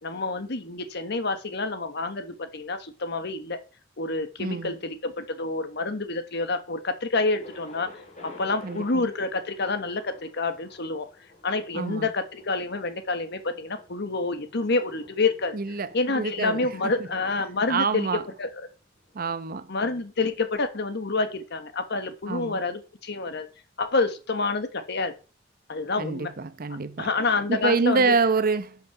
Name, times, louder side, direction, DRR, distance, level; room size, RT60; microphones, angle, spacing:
voice 1, 0.0-3.6 4.0-7.9 8.2-11.1 11.4-15.6 15.9-18.1 18.4-18.5 19.7-23.5 23.8-25.1 25.7-26.3 27.0-28.1, left 3 dB, 60° left, 1.3 m, -28 dB
voice 2, 4.4-4.7 8.6-9.0 11.7-12.1 15.5-15.9 16.1-16.7 17.7-18.2 19.1-19.7 22.3-22.6 26.0-27.1 27.5-28.8, right 4 dB, 50° right, 0.8 m, -26 dB
Thunder, 7.4-19.2, left 2 dB, 40° left, 3.2 m, -51 dB
11.0 x 5.9 x 5.8 m
head